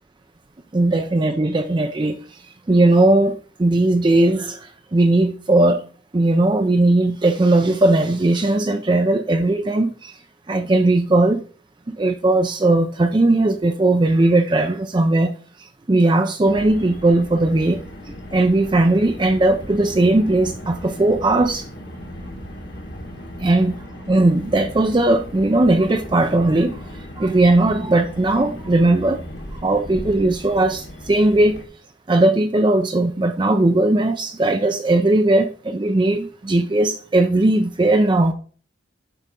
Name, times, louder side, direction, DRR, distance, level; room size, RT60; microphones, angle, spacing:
voice 1, 0.7-2.2 2.7-4.6 4.9-5.8 6.1-10.1 10.5-11.4 11.9-15.3 15.9-17.8 18.3-21.7 23.4-23.7 24.1-26.8 27.2-29.2 29.6-31.6 32.1-38.3, right 2 dB, 25° right, 0.4 m, -18 dB
Car, 16.5-31.6, equal, 55° left, 1.5 m, -37 dB
8.2 x 5.5 x 3.8 m
head